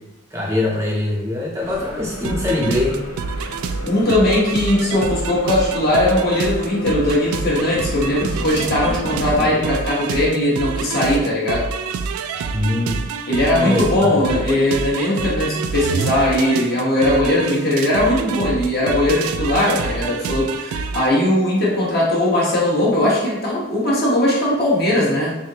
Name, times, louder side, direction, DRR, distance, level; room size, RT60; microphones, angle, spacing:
voice 1, 0.3-3.0 12.5-13.0 13.5-14.2, left 2 dB, 15° right, -5 dB, 0.5 m, -22 dB
sound 1, 1.6-9.5, equal, 80° left, 0.9 m, -33 dB
sound 2, 2.2-21.1, right 5 dB, 85° right, 0.3 m, -27 dB
voice 2, 3.8-11.7 13.3-25.3, left 1 dB, 45° left, -6 dB, 1.2 m, -19 dB
3.7 x 3.4 x 2.8 m, 1.0 s
head